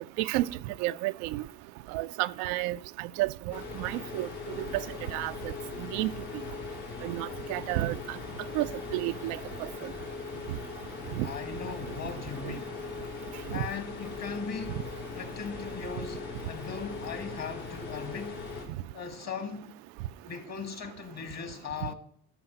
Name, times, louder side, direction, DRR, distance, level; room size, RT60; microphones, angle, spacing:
voice 1, 0.8-1.4 1.9-4.3 4.7-4.8 5.1-5.3 5.8-6.1 7.0-8.2 8.5-8.7 8.9-9.4 11.2-11.3 13.5-13.6, right 18 dB, 70° right, 0.5 m, -31 dB
sound 1, 3.5-18.7, left 4 dB, 65° left, 4.0 m, -40 dB
voice 2, 11.2-12.8 13.5-14.8 15.2-18.4 18.9-19.7 20.2-21.9, left 6 dB, 40° left, 2.0 m, -39 dB
12.0 x 5.7 x 5.2 m
hypercardioid pair, 55°, 40 cm